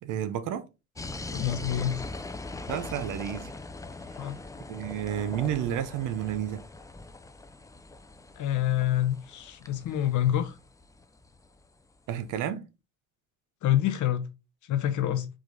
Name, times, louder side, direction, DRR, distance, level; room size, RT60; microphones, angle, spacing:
voice 1, 0.0-0.7 2.7-3.5 4.7-6.6 12.1-12.7, right 10 dB, 85° right, 0.7 m, -31 dB
sound 1, 1.0-11.7, left 2 dB, 10° left, 0.4 m, -41 dB
voice 2, 1.3-2.0 4.2-4.4 8.4-10.5 13.6-14.3 14.7-15.3, left 12 dB, 75° left, 0.8 m, -27 dB
4.9 x 2.4 x 3.8 m
cardioid pair, 90°, 30 cm